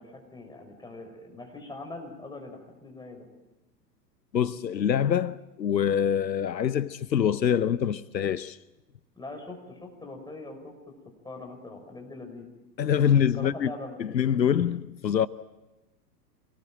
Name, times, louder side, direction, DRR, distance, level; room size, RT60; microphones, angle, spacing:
voice 1, 0.0-3.3 9.2-11.0 11.2-12.5 13.4-14.0, left 2 dB, 10° left, 6.3 m, -42 dB
voice 2, 4.3-8.6 12.8-13.7 14.0-15.3, left 8 dB, 85° left, 0.8 m, -25 dB
26.5 x 20.0 x 9.1 m
figure-of-eight pair, 100°, 50 cm